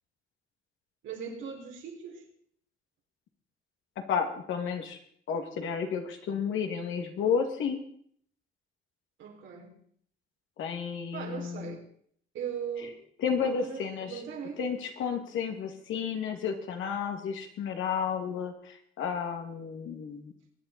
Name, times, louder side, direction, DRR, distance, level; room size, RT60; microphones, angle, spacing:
voice 1, 1.0-2.2 9.2-9.7 11.1-11.8 12.3-13.0 13.4-14.6, right 7 dB, 80° right, 1 dB, 4.0 m, -39 dB
voice 2, 4.0-5.0 5.3-7.8 10.6-11.8 13.2-14.2 14.6-20.3, left 6 dB, 80° left, 4 dB, 2.5 m, -32 dB
23.0 x 9.6 x 4.4 m, 0.63 s
cardioid pair, 90°, 20 cm